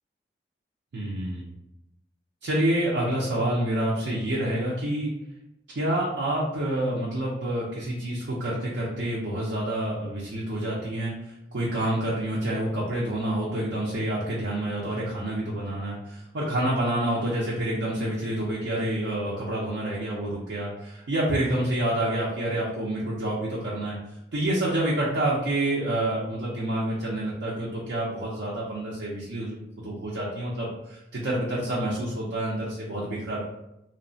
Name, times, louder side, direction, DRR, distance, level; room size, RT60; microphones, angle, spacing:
voice 1, 0.9-1.5 2.4-5.1 5.8-24.0 24.3-29.6 29.8-33.4, right 1 dB, 80° right, -5 dB, 0.5 m, -28 dB
2.8 x 2.0 x 2.6 m, 0.89 s
head